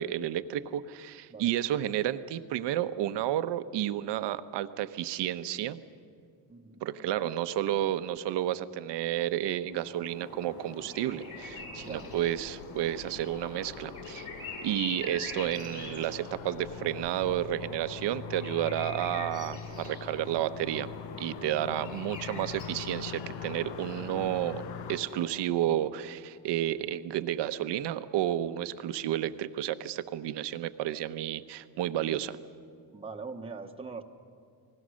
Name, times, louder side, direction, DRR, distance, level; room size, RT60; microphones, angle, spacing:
voice 1, 0.0-5.8 6.8-14.3 14.6-20.9 21.2-24.6 24.9-32.4, right 12 dB, 70° right, 12 dB, 1.0 m, -31 dB
voice 2, 6.5-7.3 11.8-12.1 32.9-34.0, right 4 dB, 15° right, 3 dB, 1.0 m, -42 dB
sound 1, 9.6-25.6, left 3 dB, 45° left, 7.6 m, -44 dB
sound 2, 11.3-25.0, left 9 dB, 90° left, 1.0 m, -43 dB
29.0 x 20.0 x 6.4 m, 2.5 s
cardioid pair, 140°, 43 cm